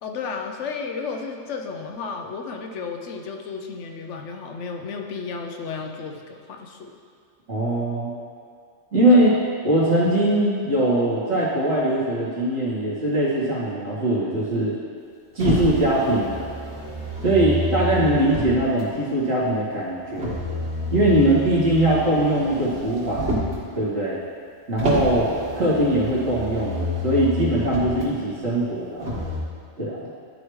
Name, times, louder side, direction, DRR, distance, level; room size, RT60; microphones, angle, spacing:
voice 1, 0.0-6.9 9.1-9.3, left 5 dB, 70° left, 3 dB, 1.0 m, -33 dB
voice 2, 7.5-8.1 8.9-9.3 9.6-14.7 15.3-16.5 17.2-20.4 20.9-23.3 23.7-24.2 24.7-25.3 25.6-29.1 29.8-30.0, right 1 dB, 85° right, -8 dB, 2.5 m, -21 dB
Motor vehicle (road), 15.4-18.8 20.1-23.6 24.8-28.0 29.0-29.4, left 1 dB, 55° right, 2.1 m, -29 dB
13.0 x 4.8 x 3.2 m, 2.2 s
omnidirectional pair, 1.3 m